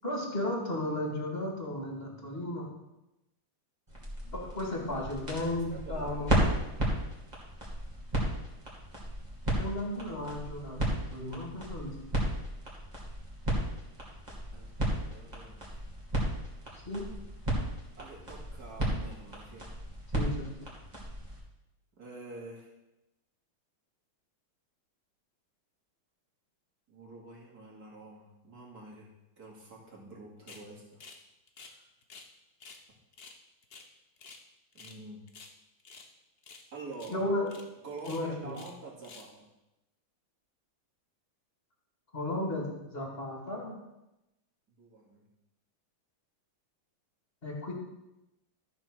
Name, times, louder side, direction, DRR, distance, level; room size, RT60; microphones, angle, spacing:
voice 1, 0.0-2.7 4.3-6.5 9.6-12.0 16.7-17.1 20.1-20.5 37.1-37.5 38.1-38.5 42.1-43.8 47.4-47.7, left 1 dB, 30° left, 0 dB, 2.1 m, -34 dB
sound 1, 3.9-21.4, right 1 dB, 20° right, 2.4 m, -34 dB
voice 2, 4.2-5.0 5.7-6.8 14.5-15.8 18.0-19.6 21.9-22.7 26.9-29.1 29.4-31.0 31.6-31.8 34.7-35.2 36.7-37.2 37.8-39.5 44.7-45.2, right 3 dB, 45° right, -3 dB, 2.8 m, -47 dB
sound 2, 30.5-30.7 31.0-31.2 31.5-32.3 32.6-32.8 33.1-34.4 34.7-35.0 35.3-36.1 36.4-36.7 36.9-37.2 37.5-37.6 38.0-38.8 39.0-39.3, left 4 dB, 50° left, 0.7 m, -51 dB
13.0 x 5.0 x 6.2 m, 0.94 s
omnidirectional pair, 2.3 m